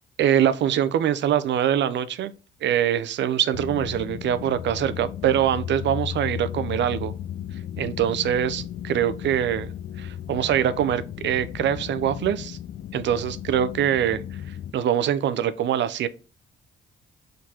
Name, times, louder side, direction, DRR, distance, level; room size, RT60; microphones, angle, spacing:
voice 1, 0.2-2.3 2.6-7.1 7.8-9.7 10.0-12.6 12.9-16.1, right 10 dB, 65° right, 0.5 m, -24 dB
sound 1, 3.5-14.7, left 10 dB, 55° left, 0.4 m, -35 dB
4.4 x 3.8 x 2.8 m
cardioid pair, 90°, 20 cm